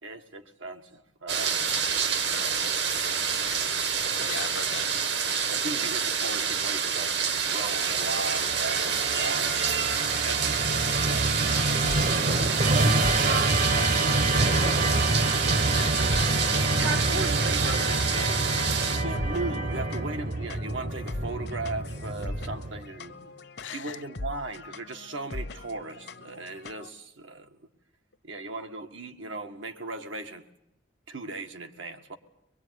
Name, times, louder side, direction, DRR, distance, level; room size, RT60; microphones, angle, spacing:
voice 1, 0.0-2.5 4.2-4.3 5.3-7.2 7.5-9.6 10.2-11.5 12.2-14.9 16.0-16.1 16.7-18.5 18.8-23.3 23.7-27.6 28.2-30.5 31.1-32.2, right 3 dB, 85° right, 6 dB, 1.7 m, -38 dB
sound 1, 1.3-19.0, right 6 dB, 65° right, 1.4 m, -28 dB
voice 2, 4.3-4.9 5.2-5.5 15.2-16.4 23.6-24.0, left 7 dB, 80° left, 8 dB, 1.0 m, -39 dB
Musical instrument, 7.6-22.9, right 2 dB, 45° right, 1.0 m, -27 dB
sound 2, 11.5-26.9, left 2 dB, 60° left, 0.9 m, -42 dB
23.5 x 21.5 x 9.5 m, 0.78 s
head